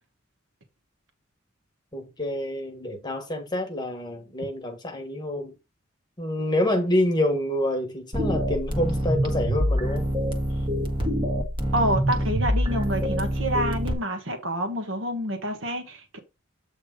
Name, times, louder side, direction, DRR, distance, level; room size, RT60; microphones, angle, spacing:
voice 1, 1.9-5.5 6.2-10.1, left 1 dB, 20° left, 1.3 m, -27 dB
sound 1, 8.1-13.9, equal, 25° right, 1.4 m, -25 dB
voice 2, 11.7-16.2, equal, 70° right, 1.5 m, -28 dB
8.4 x 3.5 x 5.2 m
head